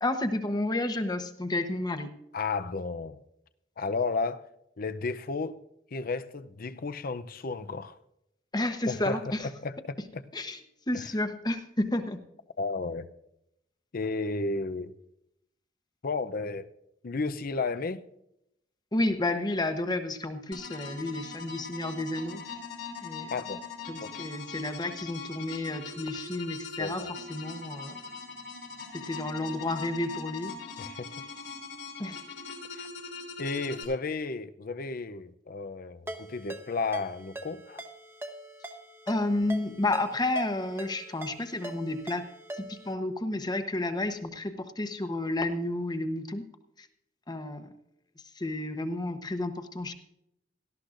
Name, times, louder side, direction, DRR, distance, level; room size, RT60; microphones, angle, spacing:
voice 1, 0.0-2.1 8.5-9.5 10.3-10.6 10.9-12.2 18.9-22.4 23.0-23.3 23.9-28.0 28.9-30.5 32.0-32.2 39.1-42.3 42.5-46.4 46.8-46.9 47.3-47.7 48.3-49.9, left 2 dB, 20° left, 0.9 m, -31 dB
voice 2, 2.3-3.2 3.8-4.4 4.8-5.6 5.9-8.0 8.9-9.2 9.6-10.2 10.9-11.1 12.6-13.1 13.9-14.9 16.0-16.7 17.0-18.0 23.3-23.6 24.0-24.3 26.8-27.1 30.8-31.1 32.7-32.9 33.4-37.8, left 3 dB, 50° left, 0.6 m, -33 dB
sound 1, 20.5-33.8, left 5 dB, 75° left, 3.1 m, -41 dB
Ringtone, 36.1-42.9, right 1 dB, 15° right, 1.0 m, -43 dB
18.0 x 13.0 x 2.5 m
head